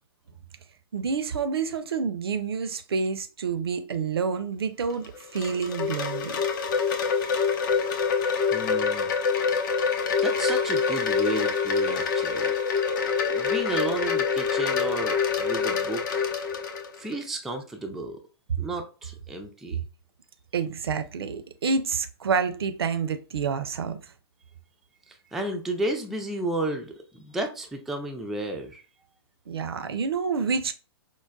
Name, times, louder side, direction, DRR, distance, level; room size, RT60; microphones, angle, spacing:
voice 1, 0.9-6.4 20.5-24.0 29.5-30.7, right 5 dB, 70° right, 0.5 m, -28 dB
Wind chime, 4.9-17.2, left 6 dB, 50° left, 0.6 m, -26 dB
voice 2, 8.5-9.1 10.2-12.5 13.0-16.3 17.0-18.2 18.6-19.8 25.1-28.8, right 2 dB, ahead, 0.3 m, -33 dB
4.5 x 2.1 x 2.3 m
figure-of-eight pair, 115°, 13 cm